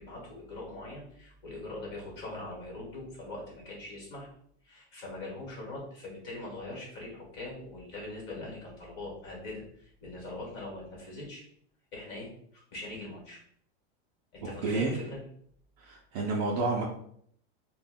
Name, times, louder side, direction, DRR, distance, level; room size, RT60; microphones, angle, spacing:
voice 1, 0.0-4.3 4.6-11.4 11.9-13.4 14.3-15.2, left 2 dB, 35° left, -3 dB, 1.1 m, -42 dB
voice 2, 14.4-14.9 15.8-16.8, right 3 dB, 40° right, -1 dB, 0.4 m, -30 dB
2.5 x 2.1 x 3.6 m, 0.65 s
supercardioid pair, 170°, 33 cm